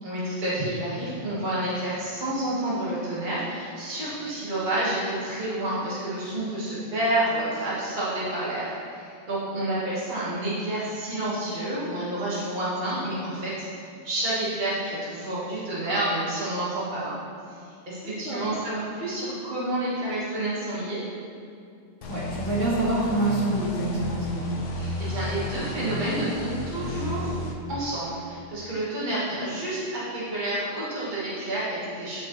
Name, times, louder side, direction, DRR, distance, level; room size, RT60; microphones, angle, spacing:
voice 1, 0.0-13.7 14.0-17.2 17.5-17.6 17.9-21.0 24.7-27.3 27.7-32.2, right 1 dB, 40° right, -9 dB, 1.6 m, -29 dB
sound 1, 22.0-27.5, left 1 dB, 70° left, 1.0 m, -33 dB
voice 2, 22.1-24.5, right 2 dB, 70° right, -8 dB, 2.1 m, -26 dB
8.7 x 5.2 x 3.1 m, 2.5 s
omnidirectional pair, 1.3 m